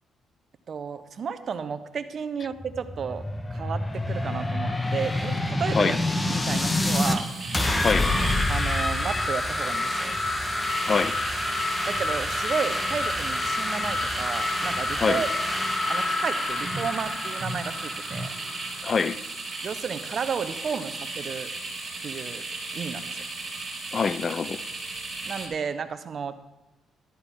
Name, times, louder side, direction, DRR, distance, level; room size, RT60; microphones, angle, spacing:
voice 1, 0.7-3.3 3.5-6.0 6.3-7.3 8.5-10.2 11.9-15.3 15.9-18.3 19.6-21.5 22.0-22.4 22.7-23.2 25.2-26.4, right 6 dB, 50° right, 1.0 m, -32 dB
sound 1, 2.5-7.2 7.5-19.1, left 2 dB, 15° left, 1.3 m, -27 dB
sound 2, 6.5-25.5, right 2 dB, 25° right, 4.5 m, -36 dB
voice 2, 7.8-8.1 10.8-11.2 15.0-15.2 18.8-19.2 23.9-24.6, left 5 dB, 40° left, 0.4 m, -25 dB
13.0 x 13.0 x 3.7 m
cardioid pair, 90°, 0 cm